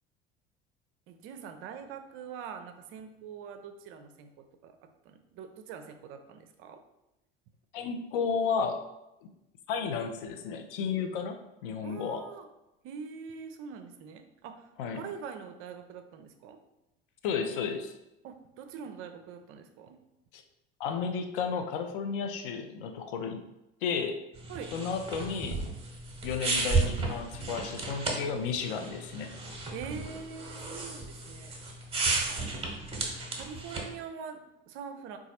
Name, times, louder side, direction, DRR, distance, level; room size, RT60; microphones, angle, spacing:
voice 1, 1.1-6.8 11.8-12.5 12.8-16.6 18.2-20.0 24.5-24.7 29.7-31.6 33.0-35.2, right 6 dB, 45° right, 7 dB, 0.5 m, -44 dB
voice 2, 7.7-8.8 9.2-9.3 9.7-12.2 14.8-15.0 17.2-17.9 20.3-20.4 20.8-23.4 23.8-24.2 24.7-25.6 26.2-29.3, left 6 dB, 60° left, 6 dB, 0.5 m, -32 dB
sound 1, 24.4-34.0, right 3 dB, 20° right, 1.0 m, -33 dB
3.9 x 2.4 x 4.1 m, 0.92 s
figure-of-eight pair, 65°, 30 cm